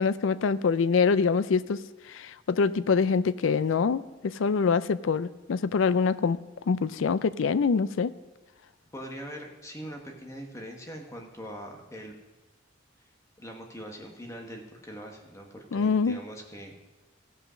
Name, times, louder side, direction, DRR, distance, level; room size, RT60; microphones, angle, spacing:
voice 1, 0.0-1.8 2.1-6.4 6.7-8.1 15.7-16.2, left 5 dB, 80° left, 15 dB, 0.4 m, -25 dB
voice 2, 8.9-12.1 13.4-16.8, equal, 15° left, 1 dB, 1.2 m, -42 dB
15.0 x 5.6 x 6.2 m, 1.1 s
head